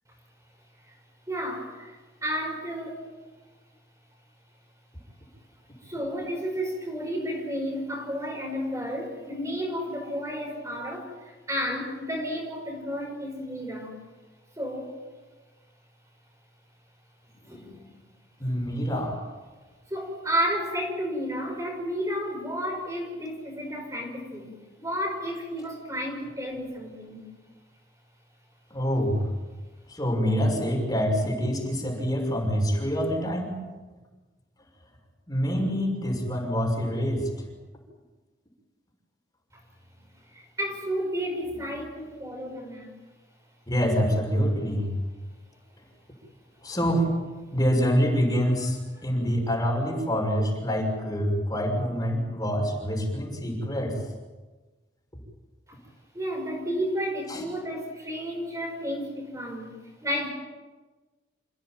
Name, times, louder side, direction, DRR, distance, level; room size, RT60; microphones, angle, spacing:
voice 1, 1.3-3.0 5.8-13.9 14.6-14.9 17.4-17.9 18.4-18.7 19.9-27.3 40.3-42.9 56.1-60.3, equal, 15° right, 0 dB, 5.3 m, -32 dB
voice 2, 18.4-19.2 28.7-29.2 29.9-33.6 35.3-37.3 43.7-44.9 46.6-47.1 47.5-54.0 57.3-57.4, equal, 20° left, 0 dB, 6.2 m, -26 dB
28.5 x 16.5 x 9.1 m, 1.3 s
head